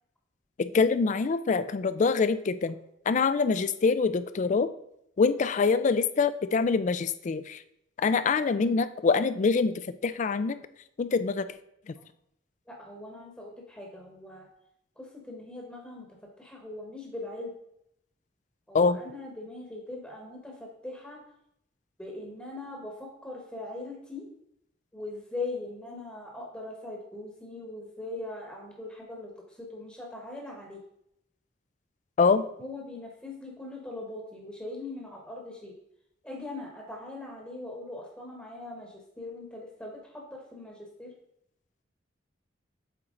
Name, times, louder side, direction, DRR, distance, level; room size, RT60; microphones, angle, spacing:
voice 1, 0.6-2.8 3.1-4.7 5.2-7.6 8.0-10.6 11.0-11.5 18.7-19.0 32.2-32.4, left 4 dB, 40° left, 13 dB, 0.4 m, -25 dB
voice 2, 12.7-14.5 15.0-16.1 16.4-17.5 18.7-20.5 20.8-21.2 22.0-24.2 24.9-29.3 29.6-30.8 32.2-32.3 32.6-35.7 36.2-41.1, left 2 dB, 10° left, -1 dB, 1.1 m, -40 dB
7.8 x 4.5 x 3.7 m, 0.76 s
head